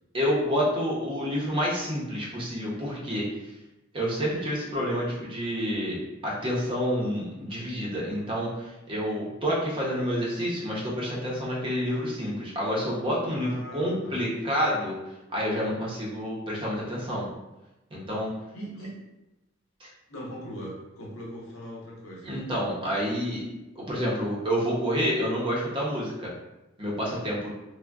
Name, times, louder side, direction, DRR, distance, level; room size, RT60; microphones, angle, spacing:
voice 1, 0.1-3.5 3.9-14.9 15.3-17.3 17.9-18.3 19.8-19.9 22.2-23.4 23.7-26.3 26.8-27.5, equal, 25° right, -5 dB, 0.6 m, -28 dB
voice 2, 13.2-14.2 18.5-18.9 20.1-22.3, equal, 85° left, -4 dB, 0.9 m, -40 dB
3.5 x 2.1 x 2.2 m, 0.98 s
head